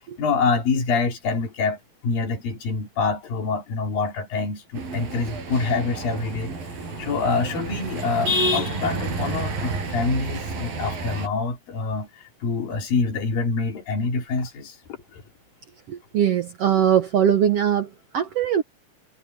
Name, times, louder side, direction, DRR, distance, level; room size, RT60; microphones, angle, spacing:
voice 1, 0.2-6.5 7.0-14.8 15.1-15.2, left 4 dB, 80° left, 5.0 m, -26 dB
sound 1, 4.8-11.3, right 1 dB, 90° right, 8.9 m, -29 dB
voice 2, 15.9-18.6, right 9 dB, 70° right, 1.5 m, -21 dB
omnidirectional pair, 4.0 m